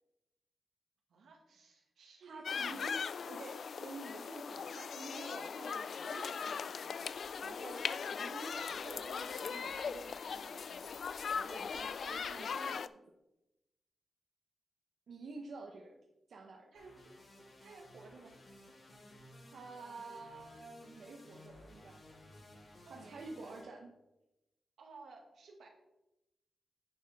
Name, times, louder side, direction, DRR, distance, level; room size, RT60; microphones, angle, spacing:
voice 1, 1.1-2.8 16.7-17.2 17.6-18.4 22.9-23.5 24.8-25.7, right 3 dB, 90° right, 1 dB, 1.9 m, -56 dB
voice 2, 2.2-11.0 11.3-13.0 15.1-15.9 16.3-16.7 19.4-22.0 22.9-23.9, right 3 dB, 70° right, 1 dB, 1.0 m, -49 dB
sound 1, 2.4-12.9, left 6 dB, 65° left, 0.3 m, -39 dB
sound 2, 16.7-23.6, left 1 dB, 45° left, 3.3 m, -57 dB
10.0 x 7.1 x 3.6 m, 0.95 s
wide cardioid pair, 105°, 0 cm